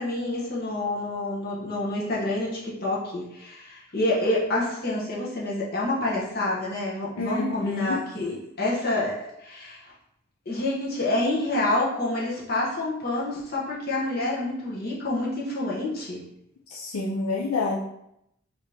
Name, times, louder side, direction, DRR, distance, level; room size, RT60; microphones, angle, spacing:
voice 1, 0.0-9.8 10.5-16.2, left 2 dB, 45° left, -5 dB, 1.0 m, -28 dB
voice 2, 7.2-8.0 16.7-17.8, left 3 dB, 80° left, -3 dB, 0.5 m, -28 dB
4.1 x 2.8 x 3.3 m, 0.80 s
head